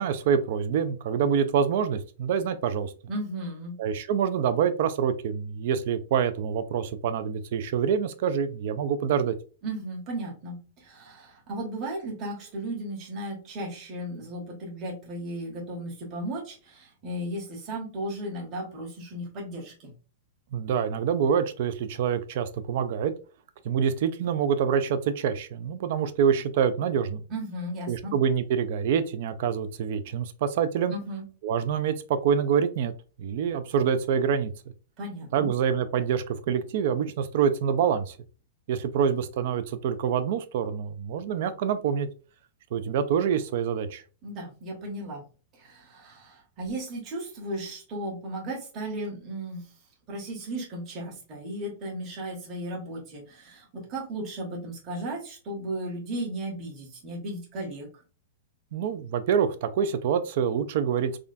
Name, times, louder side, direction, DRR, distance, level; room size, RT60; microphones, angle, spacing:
voice 1, 0.0-2.9 3.8-9.3 20.5-23.1 23.6-27.2 27.9-30.9 31.4-32.9 33.2-34.5 35.3-38.1 38.7-42.1 42.7-44.0 58.7-61.2, right 7 dB, 55° right, 11 dB, 0.4 m, -26 dB
voice 2, 3.1-3.8 9.6-19.9 27.3-28.2 30.9-31.2 35.0-35.5 44.2-45.2 45.5-49.6 50.1-57.9, right 1 dB, 25° right, -2 dB, 1.1 m, -35 dB
3.6 x 2.2 x 2.5 m, 0.36 s
supercardioid pair, 155°, 0 cm